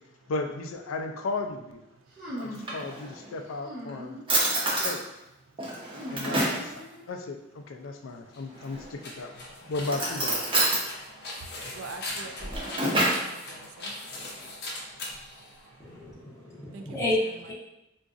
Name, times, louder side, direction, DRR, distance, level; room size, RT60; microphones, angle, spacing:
voice 1, 0.3-1.8 2.4-4.2 4.8-5.0 6.1-10.4, left 3 dB, 90° left, 5 dB, 0.4 m, -35 dB
sound 1, 2.2-2.8 3.6-4.3 4.6-5.1 5.9-7.1, equal, 45° right, 1.3 m, -40 dB
Drawer open or close, 2.4-3.3 3.9-4.0 4.3-5.0 5.6-6.7 8.5-9.1 9.8-10.9 12.2-13.3, right 1 dB, 25° right, 0.7 m, -27 dB
sound 2, 8.2-16.1, left 2 dB, 55° left, 0.6 m, -40 dB
voice 2, 11.7-13.9 16.7-16.8, right 3 dB, 75° right, 5 dB, 0.4 m, -44 dB
voice 3, 15.8-17.5, left 1 dB, 15° left, -6 dB, 0.8 m, -31 dB
3.8 x 2.5 x 2.4 m, 0.90 s
head